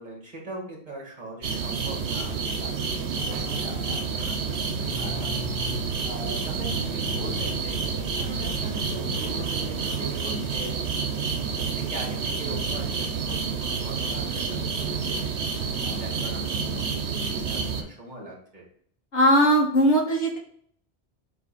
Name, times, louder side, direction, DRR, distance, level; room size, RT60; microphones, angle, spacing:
voice 1, 0.0-5.3 6.0-10.7 11.6-15.3 15.8-18.6, right 1 dB, 45° right, -2 dB, 2.3 m, -41 dB
sound 1, 1.4-17.8, right 5 dB, 80° right, 1.1 m, -29 dB
sound 2, 2.3-9.4, left 5 dB, 70° left, 1.0 m, -40 dB
voice 2, 19.1-20.4, equal, 85° left, 0 dB, 1.6 m, -19 dB
7.6 x 3.1 x 4.2 m, 0.63 s
omnidirectional pair, 1.1 m